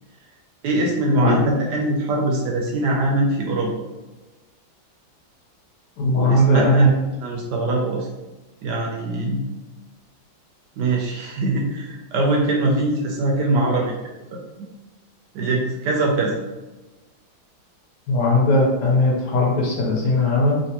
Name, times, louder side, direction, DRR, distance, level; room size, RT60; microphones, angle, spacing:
voice 1, 0.6-3.7 6.1-6.8 7.2-8.1 8.6-9.4 10.8-13.9 14.3-14.7 15.3-16.4, right 2 dB, 75° right, -1 dB, 1.0 m, -22 dB
voice 2, 6.0-6.9 18.1-20.6, left 1 dB, 65° left, -3 dB, 1.3 m, -18 dB
3.2 x 2.8 x 2.8 m, 1.1 s
omnidirectional pair, 2.1 m